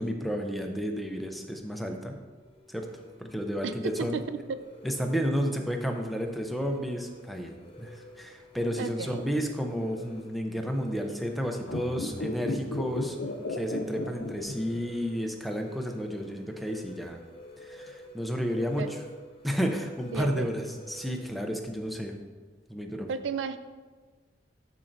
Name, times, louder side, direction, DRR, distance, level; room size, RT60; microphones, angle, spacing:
voice 1, 0.0-2.1 2.7-2.9 3.2-4.2 4.8-13.2 13.5-17.2 17.6-19.0 19.4-22.1 22.7-23.1, equal, ahead, 3 dB, 0.5 m, -32 dB
sound 1, 1.8-21.5, equal, 30° left, 0.9 m, -50 dB
voice 2, 3.6-4.2 8.8-9.2 18.8-18.9 20.1-20.5 23.1-23.6, right 5 dB, 70° right, 11 dB, 0.3 m, -33 dB
sound 2, 11.6-15.0 15.3-15.4, left 2 dB, 85° left, 0.6 m, -34 dB
11.0 x 4.4 x 2.6 m, 1.4 s
head